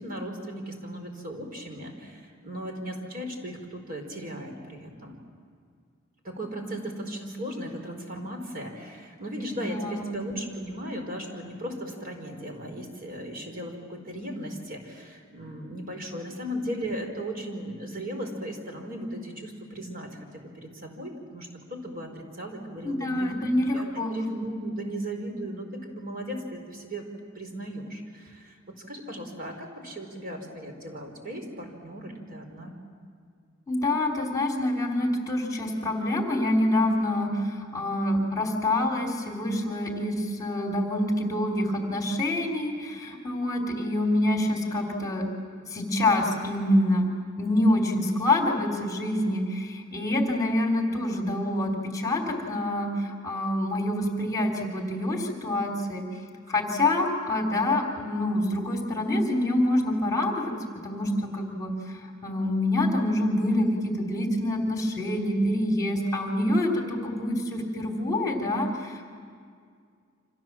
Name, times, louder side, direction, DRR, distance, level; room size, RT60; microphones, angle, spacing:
voice 1, 0.0-5.2 6.2-23.4 23.7-27.0 27.3-28.6 28.9-32.8, equal, 45° right, 3 dB, 4.8 m, -37 dB
voice 2, 9.7-10.0 22.8-24.2 33.7-45.2 45.7-47.1 47.4-56.0 56.5-60.5 60.8-61.7 62.2-69.1, left 1 dB, 20° left, 1 dB, 3.4 m, -26 dB
29.5 x 26.5 x 7.5 m, 2.1 s
head